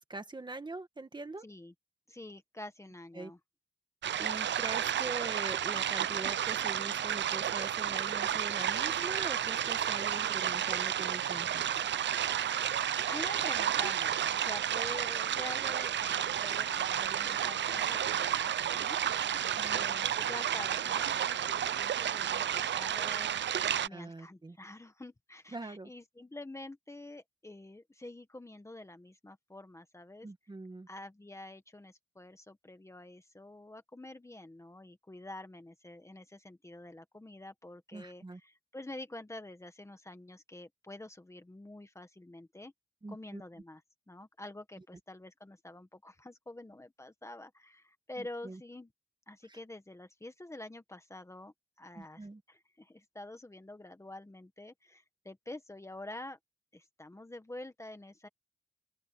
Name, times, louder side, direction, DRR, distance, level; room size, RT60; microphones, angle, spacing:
voice 1, 0.1-1.4 3.1-3.3 4.2-11.6 19.4-19.8 23.9-24.6 25.5-25.9 30.2-30.9 37.9-38.4 43.0-43.4 48.2-48.6 49.5-49.6 51.9-52.4, right 2 dB, 20° right, 1.7 m, -43 dB
voice 2, 1.4-1.7 2.1-3.4 13.1-19.0 19.7-23.3 23.8-30.3 30.9-42.7 43.1-43.8 44.1-48.9 49.3-56.4 56.7-58.3, left 1 dB, 15° left, 1.6 m, -47 dB
sound 1, 4.0-23.9, right 10 dB, 65° right, 0.5 m, -31 dB
open air
wide cardioid pair, 140°, 20 cm